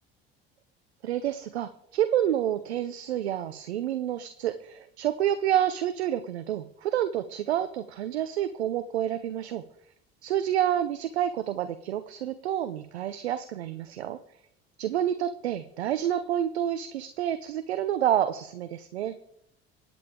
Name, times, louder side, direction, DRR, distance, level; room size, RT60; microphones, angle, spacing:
voice 1, 1.0-9.6 10.2-14.2 14.8-19.2, right 11 dB, 90° right, 11 dB, 0.7 m, -28 dB
26.5 x 8.9 x 3.7 m, 0.75 s
hypercardioid pair, 65°, 32 cm